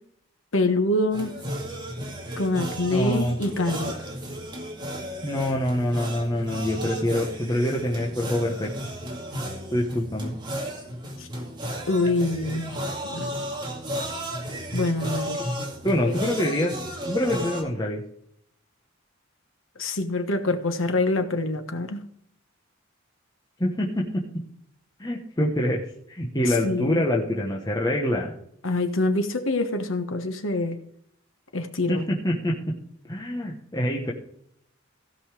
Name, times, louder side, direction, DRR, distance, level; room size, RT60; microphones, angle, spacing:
voice 1, 0.5-1.4 2.4-3.9 11.2-11.3 11.9-12.8 13.1-13.3 14.7-15.4 16.0-16.2 19.8-22.0 26.4-27.0 28.6-30.8 31.5-32.0, left 2 dB, 75° left, 1.3 m, -25 dB
sound 1, 1.1-17.6, equal, 25° right, 2.2 m, -34 dB
voice 2, 2.9-3.4 5.2-8.7 9.7-10.4 15.8-16.7 17.1-18.0 23.6-24.2 25.0-28.3 31.9-32.7 33.1-34.1, left 1 dB, 20° left, 1.2 m, -25 dB
16.0 x 5.6 x 5.0 m
head